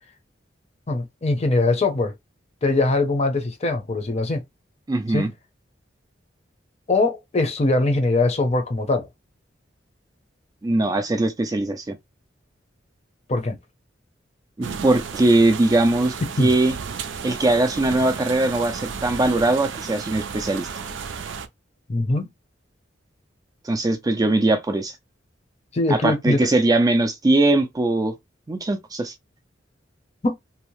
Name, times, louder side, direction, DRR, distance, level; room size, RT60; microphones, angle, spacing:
voice 1, 0.9-2.1 2.6-4.4 5.1-5.3 6.9-9.1 13.3-13.6 16.4-16.5 21.9-22.3 25.7-26.5 30.2-30.3, left 2 dB, 35° left, 0.6 m, -22 dB
voice 2, 4.9-5.3 10.6-12.0 14.6-16.7 17.2-20.7 23.6-24.9 25.9-28.1 28.5-29.1, right 2 dB, 20° right, 0.4 m, -21 dB
sound 1, 14.6-21.5, right 6 dB, 80° right, 0.4 m, -33 dB
2.7 x 2.0 x 2.9 m
head